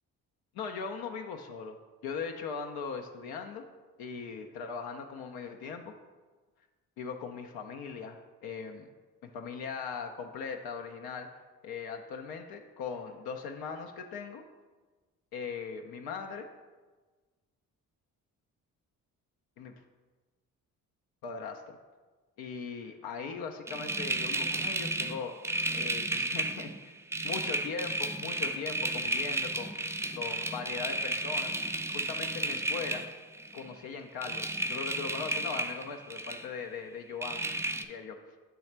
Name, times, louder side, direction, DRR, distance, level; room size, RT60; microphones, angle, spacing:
voice 1, 0.5-1.8 2.0-3.7 4.0-5.9 7.0-8.9 9.2-11.3 11.6-14.4 15.3-16.5 19.6-19.7 21.2-21.6 22.4-25.3 25.7-27.0 27.2-29.8 30.1-31.6 31.9-33.0 33.5-37.4 37.8-38.1, left 5 dB, 75° left, 4 dB, 0.6 m, -39 dB
sound 1, 23.7-33.7 34.2-36.5 37.2-37.8, right 2 dB, 10° right, 0.3 m, -33 dB
6.9 x 3.2 x 4.4 m, 1.3 s
supercardioid pair, 60°, 37 cm